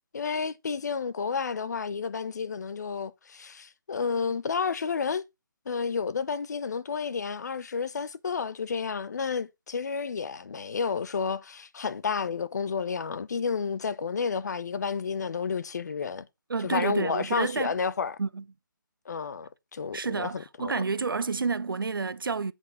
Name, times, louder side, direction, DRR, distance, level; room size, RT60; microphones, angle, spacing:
voice 1, 0.1-5.2 5.7-16.3 16.6-18.1 19.1-20.3 20.6-20.7, left 5 dB, 55° left, 1.0 m, -31 dB
voice 2, 16.5-17.8 18.2-18.4 19.9-22.5, right 4 dB, 80° right, 0.7 m, -30 dB
8.3 x 4.7 x 5.7 m
hypercardioid pair, 160°, 11 cm